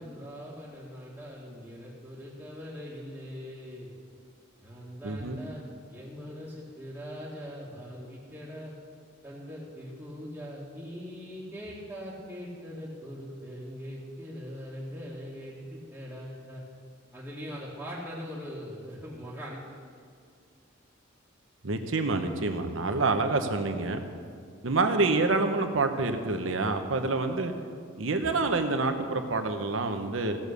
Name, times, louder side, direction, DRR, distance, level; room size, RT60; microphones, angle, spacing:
voice 1, 0.0-3.9 4.6-8.7 9.2-16.6 17.1-19.6, equal, 10° right, -8 dB, 1.8 m, -41 dB
voice 2, 5.0-5.4 21.6-24.0 24.6-27.5 28.0-30.4, right 3 dB, 80° right, 6 dB, 1.0 m, -27 dB
16.0 x 7.3 x 6.7 m, 2.2 s
head